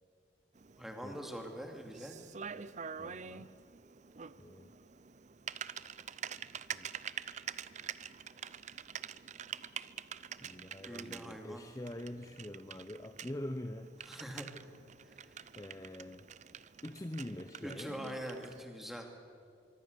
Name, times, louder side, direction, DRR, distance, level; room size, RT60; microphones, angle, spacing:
Typing, 0.6-18.6, right 8 dB, 40° right, 0.5 m, -47 dB
voice 1, 0.8-2.2 10.8-11.6 14.0-14.5 15.0-15.4 17.6-19.1, equal, ahead, 3 dB, 2.6 m, -44 dB
voice 2, 3.0-3.5 4.4-4.7 6.7-6.9 10.4-14.0 15.6-16.3 16.8-18.0, left 1 dB, 20° left, 8 dB, 0.7 m, -44 dB
24.0 x 24.0 x 6.9 m, 2.4 s
head